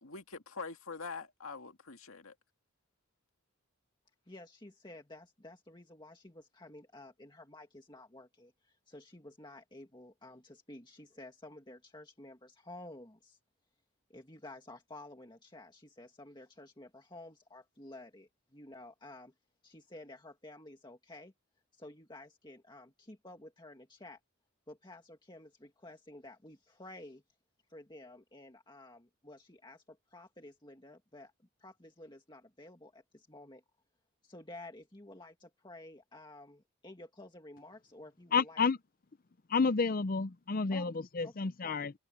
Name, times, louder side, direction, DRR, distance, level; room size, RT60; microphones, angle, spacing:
voice 1, 0.0-2.3, left 4 dB, 75° left, 2.1 m, -44 dB
voice 2, 4.3-13.4 14.1-19.3 19.6-21.3 21.7-24.2 24.7-27.2 27.7-31.3 31.6-33.6 34.2-38.6 40.7-40.9 41.2-41.3 41.6-41.8, left 2 dB, 20° left, 2.0 m, -52 dB
voice 3, 38.3-38.8 39.5-41.9, left 4 dB, 40° left, 0.6 m, -30 dB
head